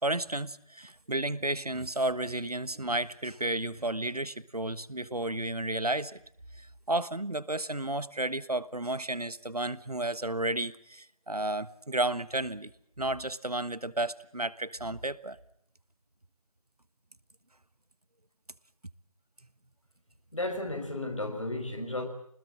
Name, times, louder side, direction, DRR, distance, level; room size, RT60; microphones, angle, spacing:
voice 1, 0.0-6.2 6.6-12.7 13.0-15.4, right 1 dB, 85° right, 1.3 m, -32 dB
voice 2, 20.3-22.0, left 2 dB, 55° left, 5.5 m, -33 dB
25.5 x 20.5 x 7.5 m
figure-of-eight pair, 165°, 19 cm